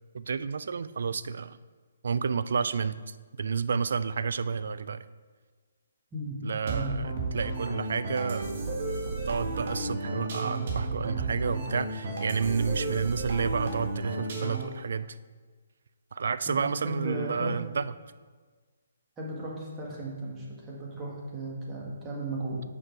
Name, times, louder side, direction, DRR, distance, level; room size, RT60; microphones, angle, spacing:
voice 1, 0.1-1.6 2.0-5.0 6.4-8.5 9.3-15.2 16.1-17.9, right 5 dB, 65° right, 14 dB, 0.3 m, -30 dB
sound 1, 6.7-14.8, right 2 dB, 50° right, 1.6 m, -33 dB
voice 2, 16.6-17.6 19.2-22.6, right 1 dB, 15° right, -5 dB, 1.7 m, -36 dB
6.7 x 5.0 x 4.6 m, 1.4 s
hypercardioid pair, 145°, 0 cm